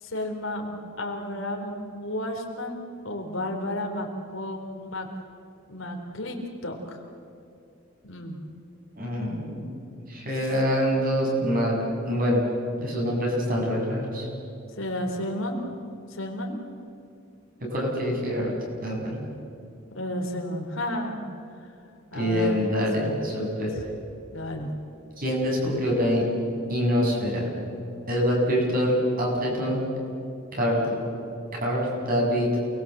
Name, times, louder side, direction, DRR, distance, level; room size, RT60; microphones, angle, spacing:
voice 1, 0.0-5.1 5.7-6.4 6.6-7.0 8.0-8.4 10.4-10.5 14.8-15.6 16.1-16.6 20.0-21.2 22.1-23.2 23.7-23.8 24.3-24.7, left 1 dB, 75° left, 2 dB, 3.8 m, -32 dB
voice 2, 9.0-9.7 10.1-11.7 12.0-12.4 12.8-14.3 17.6-18.5 18.8-19.2 22.1-23.7 25.2-26.2 26.7-27.5 28.1-29.8 30.5-30.9 31.6-32.5, equal, 45° right, -2 dB, 7.4 m, -25 dB
28.5 x 21.0 x 7.9 m, 2.5 s
head